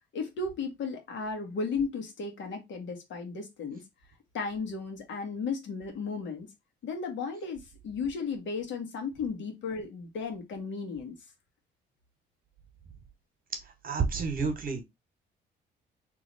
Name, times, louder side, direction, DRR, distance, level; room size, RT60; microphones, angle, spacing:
voice 1, 0.1-3.8 4.3-6.5 6.8-11.1, left 4 dB, 70° left, 1.5 m, -35 dB
voice 2, 13.8-14.8, right 5 dB, 45° right, 1.5 m, -29 dB
3.1 x 3.1 x 4.0 m
cardioid pair, 90°, 20 cm